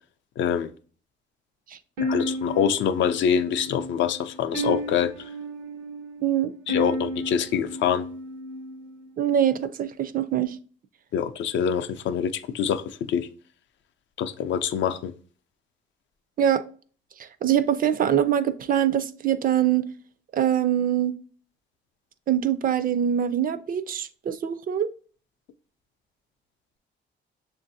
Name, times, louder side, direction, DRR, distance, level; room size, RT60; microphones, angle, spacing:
voice 1, 0.4-0.7 2.0-5.3 6.7-8.1 11.1-13.3 14.2-15.1, left 8 dB, 70° left, 0.4 m, -25 dB
sound 1, 2.0-9.1, equal, 90° right, 0.8 m, -33 dB
voice 2, 6.2-6.5 9.2-10.6 16.4-16.6 17.2-19.9 20.3-21.1 22.3-24.9, right 10 dB, 45° right, 0.4 m, -23 dB
6.7 x 2.5 x 2.6 m
cardioid pair, 90°, 20 cm